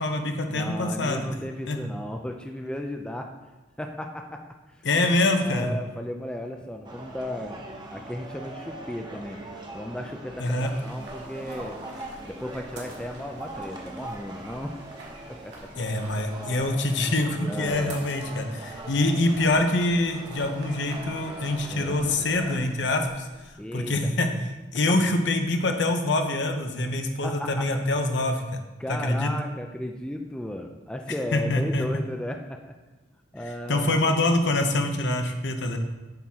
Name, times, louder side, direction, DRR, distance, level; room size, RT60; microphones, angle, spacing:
voice 1, 0.0-1.3 1.7-1.8 4.8-5.7 10.4-10.7 15.8-23.3 23.7-24.3 24.7-28.6 28.9-29.3 31.3-31.9 33.7-35.8, left 2 dB, 65° left, 5 dB, 0.8 m, -25 dB
voice 2, 0.5-3.3 3.8-4.9 5.3-7.6 7.9-9.4 9.7-11.8 12.3-14.7 15.3-15.7 17.5-18.0 21.7-22.1 23.6-24.1 26.9-27.7 28.8-32.7 33.3-34.0, left 1 dB, 5° left, 3 dB, 0.4 m, -35 dB
sound 1, 6.8-22.6, right 1 dB, 25° right, 0.9 m, -41 dB
sound 2, 10.6-23.5, right 1 dB, 60° right, 1.8 m, -49 dB
8.2 x 3.6 x 6.1 m, 1.1 s
head